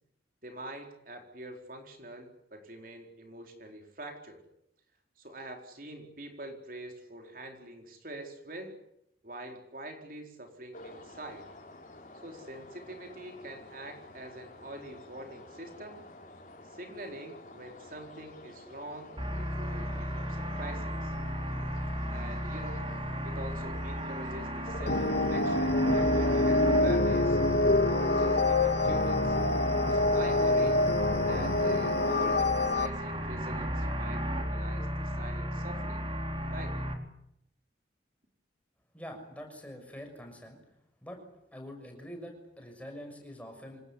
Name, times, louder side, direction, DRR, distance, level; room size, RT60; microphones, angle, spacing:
voice 1, 0.4-4.4 5.2-8.8 9.2-11.5 12.2-16.0 16.7-21.1 22.1-22.9 23.2-27.4 27.8-29.4 29.9-30.9 31.3-36.0 36.5-36.8, right 1 dB, 50° right, 3 dB, 4.3 m, -45 dB
sound 1, 10.7-29.7, left 1 dB, 45° left, 5.1 m, -50 dB
sound 2, 19.2-36.9, equal, 30° right, 4.0 m, -34 dB
sound 3, 24.9-32.9, left 2 dB, 70° left, 2.0 m, -26 dB
voice 2, 38.9-40.6 41.0-41.2 41.5-43.8, equal, 10° left, 3 dB, 6.4 m, -45 dB
27.0 x 19.0 x 9.9 m, 0.79 s
head